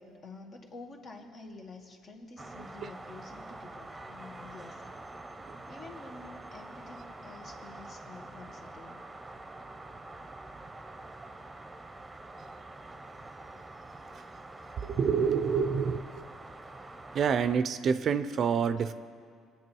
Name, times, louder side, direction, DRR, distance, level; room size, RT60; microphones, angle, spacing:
voice 1, 0.0-5.0 5.7-9.0, left 3 dB, 45° left, 2 dB, 2.1 m, -49 dB
sound 1, 2.4-17.6, right 2 dB, 15° right, 0.9 m, -46 dB
voice 2, 14.8-16.2 17.1-18.9, right 6 dB, 50° right, 12 dB, 0.6 m, -27 dB
22.5 x 8.7 x 4.6 m, 2.2 s
cardioid pair, 95°, 0 cm